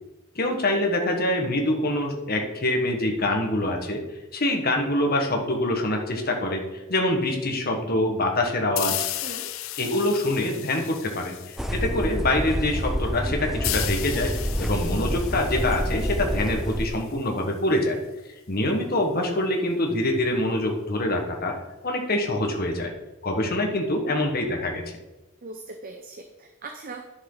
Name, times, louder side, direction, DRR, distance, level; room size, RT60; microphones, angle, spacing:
voice 1, 0.3-4.0 4.3-6.6 6.9-9.0 9.8-18.0 18.5-21.5 21.8-22.9 23.2-24.8, left 1 dB, 45° left, 2 dB, 1.5 m, -25 dB
sound 1, 8.8-12.1 13.6-17.1, left 15 dB, 65° left, 0.4 m, -34 dB
voice 2, 9.2-9.5 25.4-27.1, right 3 dB, 40° right, 5 dB, 0.7 m, -40 dB
sound 2, 11.6-16.9, equal, ahead, 0.6 m, -28 dB
11.0 x 6.4 x 3.9 m, 1.1 s
head